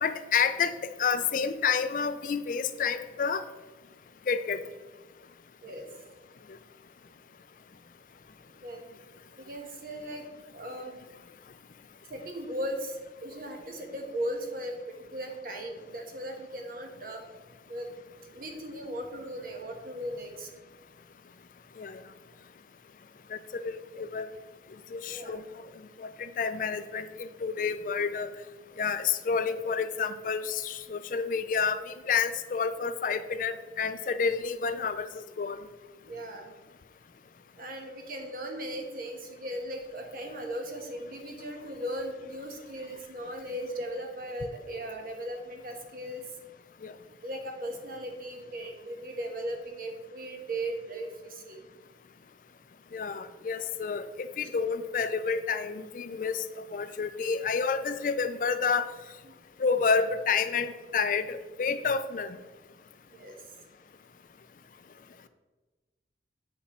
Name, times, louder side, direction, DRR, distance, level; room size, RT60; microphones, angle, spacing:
voice 1, 0.0-3.4 4.3-4.6 21.8-22.0 23.3-24.3 24.9-25.4 26.0-28.3 28.8-35.6 46.8-46.9 52.9-56.4 56.7-58.9 59.6-62.4, left 5 dB, 50° left, 12 dB, 0.4 m, -29 dB
voice 2, 8.4-8.9 9.4-10.3 10.5-11.0 12.1-14.7 15.1-17.2 17.7-17.9 18.3-20.5 25.1-25.4 36.0-36.5 37.6-46.4 47.2-51.6 54.4-54.5 59.2-59.4 63.1-63.4, right 1 dB, 50° right, 2 dB, 1.2 m, -37 dB
8.1 x 5.2 x 4.2 m, 1.2 s
head